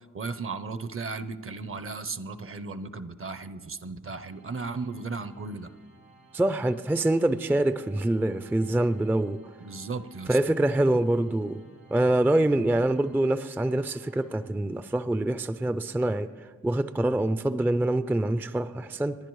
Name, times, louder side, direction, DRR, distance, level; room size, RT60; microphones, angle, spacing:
voice 1, 0.1-5.7 9.6-10.4, right 4 dB, 45° right, 0.6 m, -35 dB
Organ, 4.2-15.0, right 2 dB, 80° right, 5.5 m, -57 dB
voice 2, 6.3-9.4 10.3-11.6 11.9-19.2, right 1 dB, 5° right, 0.3 m, -25 dB
29.0 x 11.0 x 3.1 m
wide cardioid pair, 95°, 30 cm